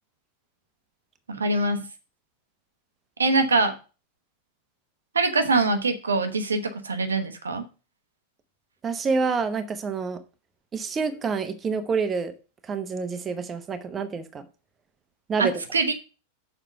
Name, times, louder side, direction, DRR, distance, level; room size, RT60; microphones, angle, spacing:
voice 1, 1.3-1.9 3.2-3.7 5.1-7.6 15.4-15.9, right 3 dB, 75° right, 1.0 m, -23 dB
voice 2, 8.8-10.2 10.7-12.3 12.6-14.4 15.3-15.6, right 5 dB, 20° right, 0.9 m, -27 dB
6.8 x 4.9 x 6.4 m
figure-of-eight pair, 90°, 0 cm